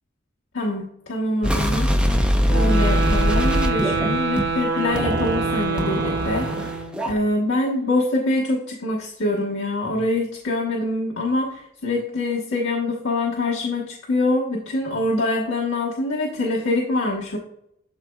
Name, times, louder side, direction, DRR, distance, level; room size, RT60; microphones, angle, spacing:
voice 1, 0.5-1.9 2.5-6.8 7.0-17.4, left 2 dB, 90° left, -5 dB, 1.2 m, -24 dB
sound 1, 1.4-4.6 4.9-7.1, equal, 5° right, 0.6 m, -22 dB
sound 2, 2.4-7.0, right 4 dB, 65° right, 1.0 m, -26 dB
12.0 x 4.1 x 2.3 m, 0.75 s
head